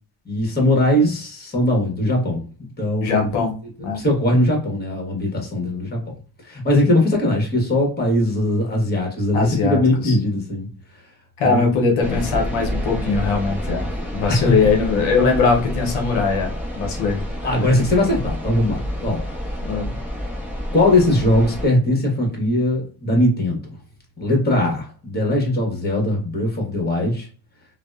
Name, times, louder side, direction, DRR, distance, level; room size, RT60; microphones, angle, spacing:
voice 1, 0.2-2.4 2.8-3.3 3.9-6.2 6.5-10.7 11.4-11.6 12.0-12.2 14.3-14.5 17.4-19.2 20.7-23.6 24.2-27.3, left 1 dB, 20° left, 1 dB, 1.2 m, -20 dB
voice 2, 3.0-3.5 3.8-4.0 9.3-10.2 11.4-17.2 19.6-19.9, left 4 dB, 90° left, 1 dB, 0.8 m, -21 dB
sound 1, 12.0-21.7, equal, 5° right, 1.1 m, -28 dB
2.7 x 2.1 x 2.3 m, 0.38 s
cardioid pair, 80°, 46 cm